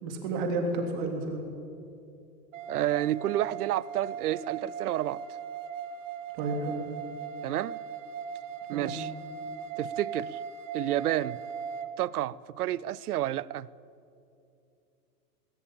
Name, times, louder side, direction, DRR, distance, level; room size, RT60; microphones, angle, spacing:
voice 1, 0.0-1.4 6.3-6.8 8.7-8.9, right 2 dB, 30° right, 3.0 m, -31 dB
sound 1, 2.5-11.9, right 7 dB, 50° right, 1.6 m, -39 dB
voice 2, 2.7-5.2 7.4-7.8 8.7-9.1 9.8-10.4 10.7-11.4 12.0-13.7, right 13 dB, 65° right, 0.7 m, -30 dB
20.0 x 19.0 x 8.8 m
supercardioid pair, 175°, 48 cm